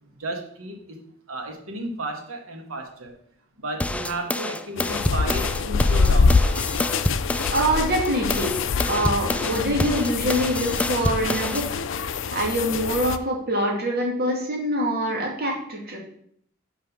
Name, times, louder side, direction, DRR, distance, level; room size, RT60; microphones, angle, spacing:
voice 1, 0.0-1.0 1.3-3.1 3.6-6.4, right 1 dB, 90° right, 3 dB, 1.6 m, -33 dB
sound 1, 3.8-7.7 8.1-11.7, left 1 dB, 5° left, 0.3 m, -28 dB
sound 2, 4.8-13.2, left 4 dB, 65° left, 0.5 m, -25 dB
voice 2, 7.5-8.5 8.9-11.8 12.3-16.0, right 1 dB, 50° right, -1 dB, 2.4 m, -24 dB
6.0 x 5.3 x 6.0 m, 0.67 s
head